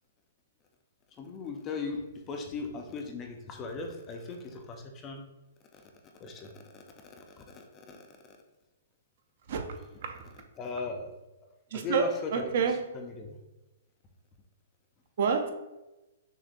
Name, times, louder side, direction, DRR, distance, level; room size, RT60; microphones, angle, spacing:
voice 1, 1.2-5.2 5.7-5.9 6.2-8.4 10.6-11.2 11.7-12.3 12.9-13.4, left 3 dB, 15° left, 3 dB, 0.4 m, -38 dB
voice 2, 9.5-10.3 11.7-12.8 15.2-15.5, right 6 dB, 50° right, 6 dB, 0.5 m, -29 dB
6.0 x 2.2 x 2.5 m, 1.0 s
hypercardioid pair, 170°, 0 cm